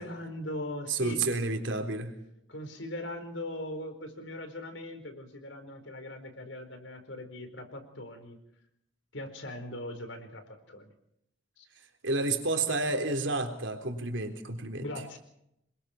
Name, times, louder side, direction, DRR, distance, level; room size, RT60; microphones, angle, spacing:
voice 1, 0.0-1.2 2.5-8.4 9.1-10.9 11.6-11.7 14.8-15.2, left 1 dB, 85° left, 7 dB, 4.5 m, -40 dB
voice 2, 0.9-2.1 12.0-14.9, right 3 dB, 85° right, 5 dB, 3.7 m, -30 dB
27.0 x 22.0 x 4.5 m, 0.79 s
head